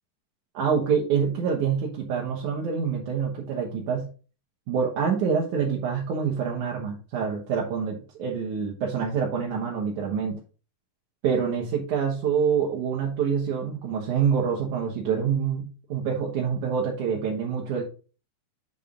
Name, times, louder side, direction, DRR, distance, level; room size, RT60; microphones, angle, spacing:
voice 1, 0.5-4.1 4.7-10.4 11.2-17.8, right 6 dB, 65° right, -2 dB, 2.6 m, -26 dB
8.4 x 5.8 x 3.7 m, 0.35 s
omnidirectional pair, 4.1 m